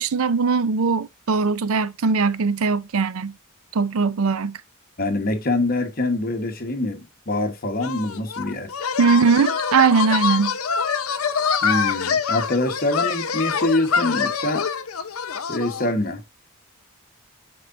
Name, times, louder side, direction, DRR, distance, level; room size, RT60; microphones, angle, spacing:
voice 1, 0.0-3.4 3.7-4.6 9.0-10.6, right 5 dB, 75° right, 0.5 m, -20 dB
voice 2, 5.0-8.7 11.6-14.7 15.5-16.2, left 2 dB, 45° left, 1.2 m, -24 dB
sound 1, 7.8-15.9, left 6 dB, 80° left, 0.8 m, -25 dB
9.2 x 4.6 x 2.6 m
head